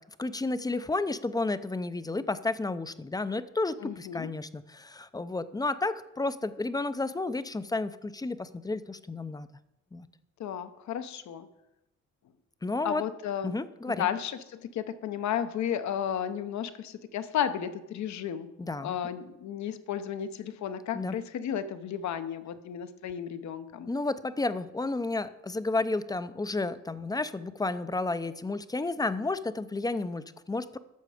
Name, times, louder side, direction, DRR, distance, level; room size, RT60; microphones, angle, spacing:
voice 1, 0.2-9.5 9.9-10.1 12.6-13.0 13.4-14.1 18.6-18.9 20.9-21.2 23.9-30.8, left 3 dB, 15° left, 14 dB, 0.5 m, -31 dB
voice 2, 3.8-4.3 10.4-11.5 12.8-13.5 13.8-18.5 18.8-23.9, left 9 dB, 65° left, 11 dB, 0.8 m, -33 dB
11.5 x 6.7 x 4.9 m, 0.94 s
cardioid pair, 90°, 30 cm